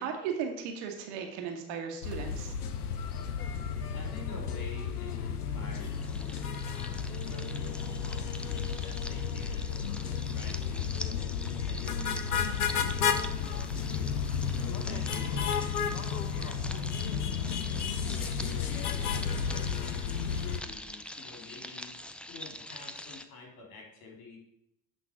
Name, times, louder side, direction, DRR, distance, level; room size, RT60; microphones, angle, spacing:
voice 1, 0.0-2.5, right 7 dB, 65° right, 3 dB, 1.6 m, -36 dB
sound 1, 2.0-20.6, left 7 dB, 85° left, 0.7 m, -32 dB
voice 2, 3.9-17.5 18.0-21.9 22.3-24.4, left 4 dB, 70° left, -1 dB, 3.0 m, -49 dB
sound 2, 5.7-23.2, left 1 dB, 5° left, 0.4 m, -45 dB
9.2 x 4.1 x 5.8 m, 0.78 s
hypercardioid pair, 70°, 44 cm